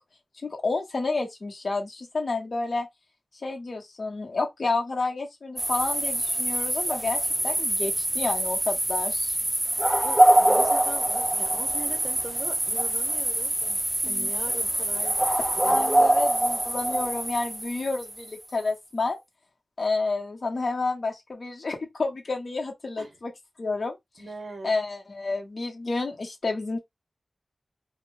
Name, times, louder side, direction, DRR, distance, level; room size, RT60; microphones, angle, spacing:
voice 1, 0.4-2.9 3.4-9.4 14.0-14.3 15.6-19.2 19.8-23.3 23.6-24.0 24.6-26.8, left 3 dB, 60° left, 1.0 m, -30 dB
sound 1, 5.6-18.4, right 1 dB, 20° right, 0.5 m, -24 dB
voice 2, 10.0-15.2 15.6-16.1 23.0-23.2 24.2-24.8, right 3 dB, 70° right, 0.8 m, -40 dB
2.4 x 2.0 x 3.8 m
wide cardioid pair, 100°, 0 cm